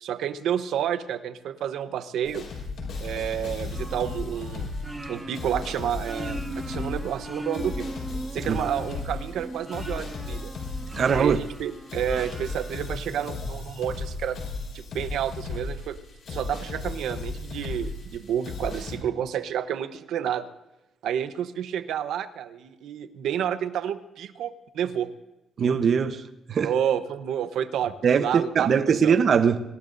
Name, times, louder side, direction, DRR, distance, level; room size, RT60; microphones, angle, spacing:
voice 1, 0.0-2.4 3.0-4.7 5.0-7.9 8.3-10.5 11.1-14.4 14.7-16.0 16.3-20.5 21.0-25.1 26.6-29.2, right 9 dB, 80° right, 1.0 m, -30 dB
sound 1, 2.2-19.0, left 3 dB, 65° left, 5.7 m, -35 dB
sound 2, 3.7-13.5, right 1 dB, 10° right, 1.2 m, -39 dB
voice 2, 10.9-11.4 25.6-26.2 26.5-26.7 28.0-29.6, right 6 dB, 55° right, 1.0 m, -21 dB
25.5 x 19.0 x 2.7 m
cardioid pair, 80°, 0 cm